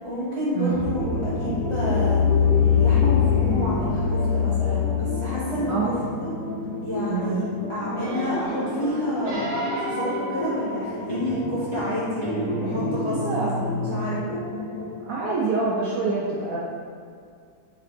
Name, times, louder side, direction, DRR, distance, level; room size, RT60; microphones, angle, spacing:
voice 1, 0.0-2.3 2.8-6.3 6.8-7.4 7.7-9.5 9.8-14.4, left 1 dB, 40° left, -10 dB, 0.4 m, -29 dB
sound 1, 0.7-15.0, left 6 dB, 65° left, 1.1 m, -26 dB
Guitar, 5.4-8.9 10.5-10.8 11.1-14.0, equal, 40° right, 0.6 m, -33 dB
sound 2, 7.9-11.4 12.1-12.2, right 1 dB, 85° right, 1.4 m, -32 dB
voice 2, 13.1-13.5 15.0-16.6, right 4 dB, 70° right, -5 dB, 0.8 m, -26 dB
3.8 x 2.8 x 3.3 m, 2.2 s
omnidirectional pair, 1.9 m